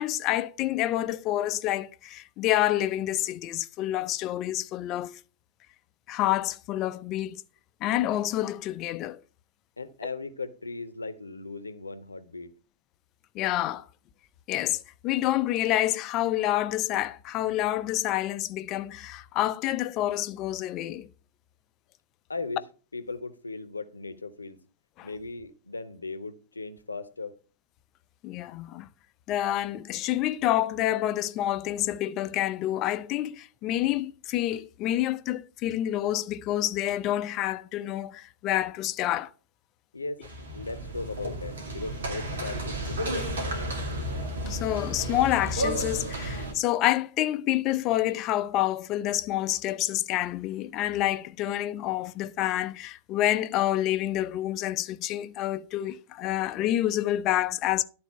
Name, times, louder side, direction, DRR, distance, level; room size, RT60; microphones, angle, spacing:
voice 1, 0.0-5.1 6.1-7.4 7.8-9.2 13.3-13.8 14.5-21.1 25.0-25.1 28.2-28.9 29.3-39.3 44.5-57.8, left 14 dB, 40° left, 0.6 m, -28 dB
voice 2, 9.8-12.5 22.3-22.6 22.9-24.6 25.0-27.3 39.9-40.2 40.5-43.5, left 3 dB, 80° left, 0.9 m, -37 dB
sound 1, 40.2-46.5, right 1 dB, 65° right, 2.2 m, -32 dB
11.5 x 4.2 x 5.5 m
figure-of-eight pair, 90°, 0 cm